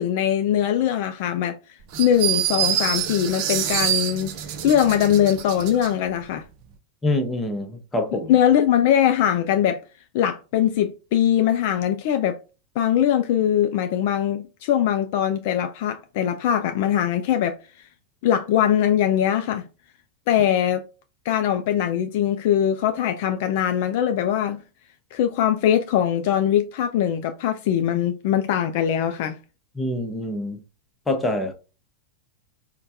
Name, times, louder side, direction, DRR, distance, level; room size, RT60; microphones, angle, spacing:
voice 1, 0.0-1.6 2.0-4.3 4.6-6.4 8.3-9.8 10.1-12.4 12.8-17.6 18.2-19.7 20.3-20.8 21.3-24.6 25.1-29.4, left 10 dB, 50° left, 0.3 m, -21 dB
sound 1, 1.9-5.9, right 10 dB, 45° right, 0.5 m, -26 dB
voice 2, 7.0-8.3 29.8-30.6 31.1-31.5, left 1 dB, 10° left, 0.8 m, -25 dB
4.3 x 2.2 x 2.7 m
figure-of-eight pair, 90°, 0 cm